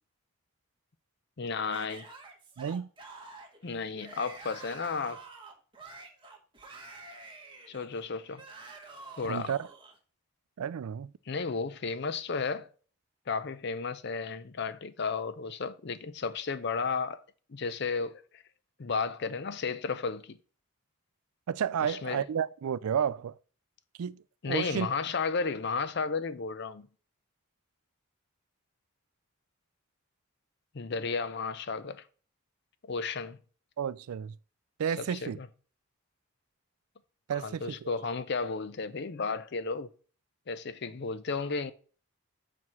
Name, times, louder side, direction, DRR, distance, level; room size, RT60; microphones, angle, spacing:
voice 1, 1.4-2.1 3.6-5.2 7.7-8.4 9.2-9.5 11.3-12.7 13.3-17.2 17.5-18.4 18.8-20.4 21.8-22.3 24.4-26.9 30.7-32.1 32.9-33.4 35.0-35.5 37.3-39.9 40.5-41.7, left 4 dB, 50° left, 0.5 m, -33 dB
Yell / Screaming, 1.7-10.0, right 3 dB, 20° right, 1.1 m, -48 dB
voice 2, 2.6-2.9 9.3-9.6 10.6-11.1 21.5-23.3 24.0-24.9 33.8-34.4 34.8-35.4 37.3-37.9, right 8 dB, 90° right, 0.4 m, -31 dB
6.1 x 4.7 x 5.4 m
head